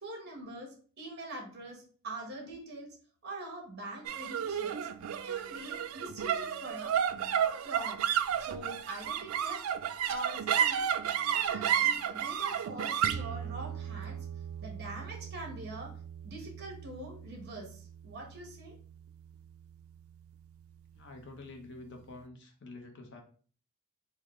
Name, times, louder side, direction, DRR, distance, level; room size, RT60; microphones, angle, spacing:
voice 1, 0.0-2.9 3.2-4.8 5.2-6.9 7.6-8.0 8.4-9.7 10.1-10.9 11.3-14.2 14.6-15.9 16.2-18.8, right 2 dB, 50° right, -1 dB, 1.2 m, -44 dB
sound 1, 4.1-20.6, right 9 dB, 80° right, 0.3 m, -33 dB
voice 2, 20.9-23.2, left 2 dB, 60° left, 3 dB, 0.7 m, -48 dB
3.6 x 2.2 x 3.6 m, 0.43 s
head